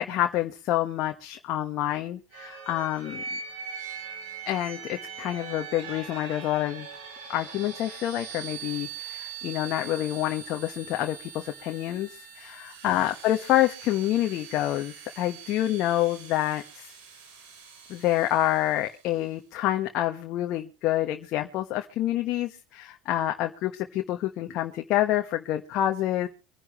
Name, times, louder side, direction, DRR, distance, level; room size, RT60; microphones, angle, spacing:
voice 1, 0.0-3.2 4.5-6.9 7.3-12.1 12.4-16.9 17.9-26.3, left 13 dB, 55° left, 4 dB, 1.3 m, -27 dB
sound 1, 2.3-19.0, right 7 dB, 75° right, 3.8 m, -42 dB
25.0 x 11.0 x 3.1 m, 0.33 s
hypercardioid pair, 85°, 0 cm